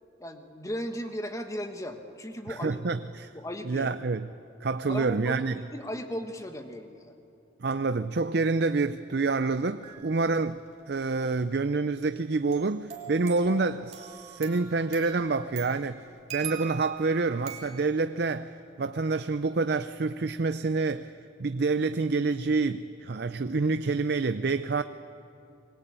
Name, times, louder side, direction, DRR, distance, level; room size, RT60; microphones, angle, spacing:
voice 1, 0.2-2.8 3.3-4.0 4.9-7.1, equal, 15° left, 6 dB, 1.4 m, -36 dB
voice 2, 2.5-3.3 3.6-4.3 4.6-5.6 7.6-10.6 10.9-18.5 18.8-21.1 21.4-24.8, right 3 dB, 55° right, 11 dB, 0.5 m, -27 dB
sound 1, 9.8-10.3 12.0-17.8, right 8 dB, 35° right, 3.2 m, -42 dB
24.5 x 21.5 x 8.9 m, 2.8 s
head